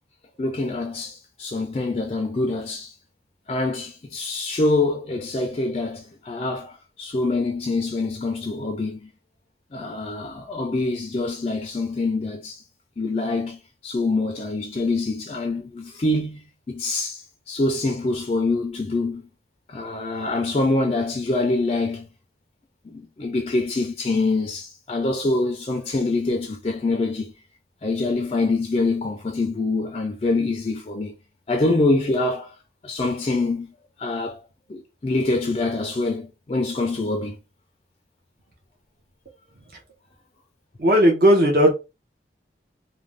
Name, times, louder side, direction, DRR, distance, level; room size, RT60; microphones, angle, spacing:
voice 1, 0.4-2.9 3.5-9.1 9.7-12.6 13.0-19.2 19.7-22.1 22.9-27.3 27.8-31.1 31.5-32.5 32.8-33.7 34.0-34.4 34.7-37.4, left 2 dB, 30° left, 0.3 m, -25 dB
voice 2, 40.8-41.7, equal, 55° right, 0.7 m, -16 dB
2.5 x 2.1 x 3.2 m
head